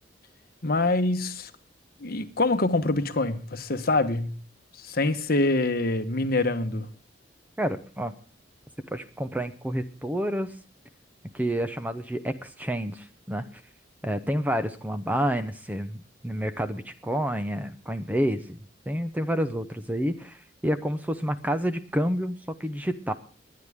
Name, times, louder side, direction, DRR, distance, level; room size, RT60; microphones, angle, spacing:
voice 1, 0.6-1.5 2.0-4.4 4.8-6.9, left 2 dB, 55° left, 1.2 m, -25 dB
voice 2, 7.6-8.1 8.9-10.5 11.3-13.5 14.0-18.6 18.9-23.1, equal, 10° right, 0.8 m, -29 dB
22.0 x 9.7 x 3.6 m
head